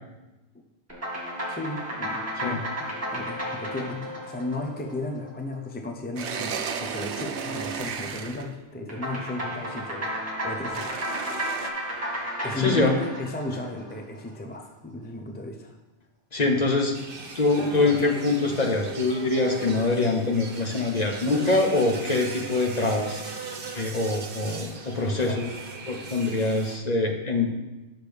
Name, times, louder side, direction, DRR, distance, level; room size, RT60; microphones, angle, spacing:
sound 1, 0.9-5.6 8.9-14.3, equal, 15° right, 1.9 m, -33 dB
voice 1, 1.5-10.2 10.4-11.0 12.4-15.7 25.1-25.6, left 2 dB, 15° left, 3 dB, 0.5 m, -34 dB
sound 2, 6.2-8.5 10.7-11.7, right 6 dB, 80° right, 0.9 m, -33 dB
voice 2, 12.6-12.9 16.3-16.9 17.3-23.3 23.7-25.5 25.9-27.6, left 3 dB, 40° left, 2 dB, 0.9 m, -24 dB
sound 3, 16.9-26.8, right 4 dB, 55° right, 1.0 m, -38 dB
8.0 x 6.0 x 3.4 m, 1.0 s
omnidirectional pair, 1.2 m